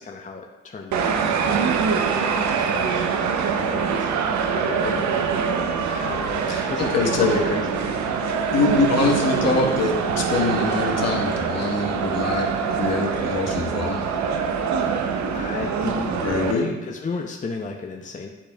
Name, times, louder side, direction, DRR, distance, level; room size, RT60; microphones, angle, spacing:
voice 1, 0.0-4.1 4.5-5.4 5.9-8.0 15.3-16.2 16.5-18.3, left 4 dB, 25° left, 2 dB, 0.6 m, -33 dB
sound 1, 0.9-16.5, right 6 dB, 65° right, 0.7 m, -24 dB
voice 2, 6.9-7.4 8.5-14.1 16.2-16.7, left 3 dB, 55° left, 0 dB, 1.3 m, -24 dB
10.0 x 4.2 x 2.3 m, 1.1 s
hypercardioid pair, 45°, 31 cm